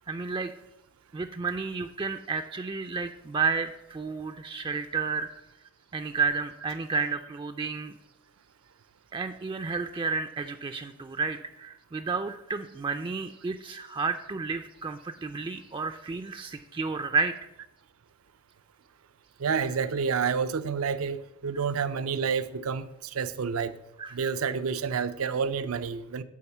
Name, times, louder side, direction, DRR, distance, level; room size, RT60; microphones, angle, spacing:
voice 1, 0.1-0.5 1.1-5.3 5.9-8.0 9.1-17.3 24.0-24.1, right 4 dB, 25° right, 8 dB, 0.3 m, -31 dB
voice 2, 19.4-23.7 24.1-26.2, right 6 dB, 85° right, 13 dB, 0.5 m, -29 dB
8.6 x 4.2 x 7.1 m, 0.87 s
head